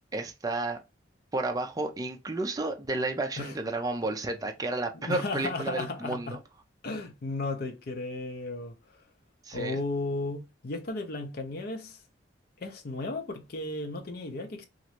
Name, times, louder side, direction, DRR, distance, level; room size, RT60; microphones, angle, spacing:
voice 1, 0.1-0.8 1.3-6.4 9.4-9.8, right 2 dB, 20° right, 0.4 m, -32 dB
voice 2, 4.9-6.4 6.8-8.8 9.5-12.0 12.6-14.6, left 2 dB, 55° left, 0.6 m, -34 dB
3.0 x 2.5 x 2.8 m
head